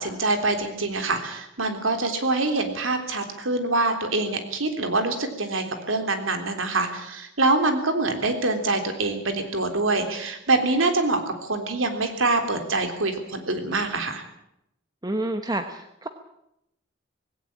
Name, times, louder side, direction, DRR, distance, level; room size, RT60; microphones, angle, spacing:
voice 1, 0.0-14.2, right 2 dB, 90° right, 6 dB, 3.5 m, -25 dB
voice 2, 15.0-16.1, right 1 dB, 20° right, 7 dB, 1.1 m, -29 dB
19.0 x 17.0 x 8.7 m, 0.81 s
head